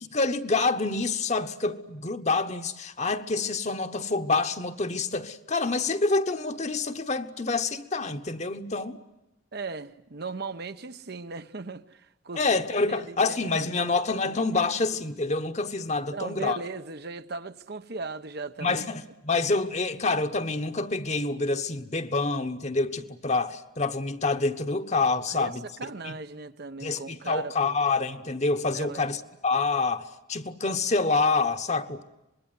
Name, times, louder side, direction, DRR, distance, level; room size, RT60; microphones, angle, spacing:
voice 1, 0.1-9.0 12.4-16.6 18.6-25.6 26.0-26.1 26.8-32.0, left 3 dB, 35° left, 1.2 m, -27 dB
voice 2, 9.5-12.4 12.9-13.4 13.8-14.0 14.3-14.6 16.1-18.9 25.3-25.5 25.8-27.8 28.7-29.0, right 3 dB, 55° right, 1.0 m, -38 dB
25.5 x 21.0 x 9.5 m
head